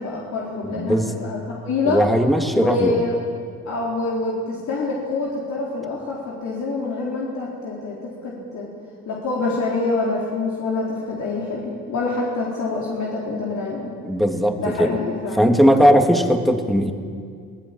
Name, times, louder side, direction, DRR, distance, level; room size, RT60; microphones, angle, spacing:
voice 1, 0.0-2.0 2.5-3.2 3.6-8.7 9.1-13.9 14.6-15.8, left 3 dB, 70° left, -4 dB, 4.2 m, -26 dB
voice 2, 0.6-1.1 1.8-3.0 14.0-15.0 15.3-16.9, equal, ahead, 4 dB, 2.3 m, -18 dB
24.5 x 17.5 x 8.9 m, 2.2 s
cardioid pair, 90°, 30 cm